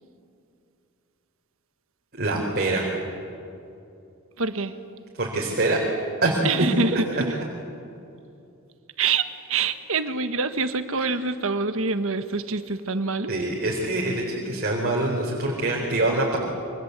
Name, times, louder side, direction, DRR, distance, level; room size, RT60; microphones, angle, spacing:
voice 1, 2.1-2.9 5.2-5.8 6.2-6.5 6.9-7.0 13.3-16.4, right 2 dB, 45° right, -2 dB, 4.0 m, -24 dB
voice 2, 4.4-4.7 6.4-7.3 9.0-13.3, right 4 dB, 65° right, 9 dB, 1.5 m, -26 dB
28.0 x 24.5 x 8.2 m, 2.7 s
head